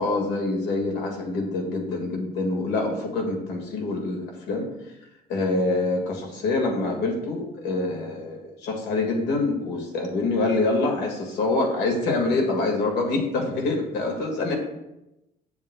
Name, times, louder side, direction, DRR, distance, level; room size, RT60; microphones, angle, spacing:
voice 1, 0.0-4.7 5.3-14.5, left 2 dB, 85° left, 1 dB, 1.8 m, -25 dB
7.9 x 7.1 x 2.2 m, 0.91 s
cardioid pair, 110°, 17 cm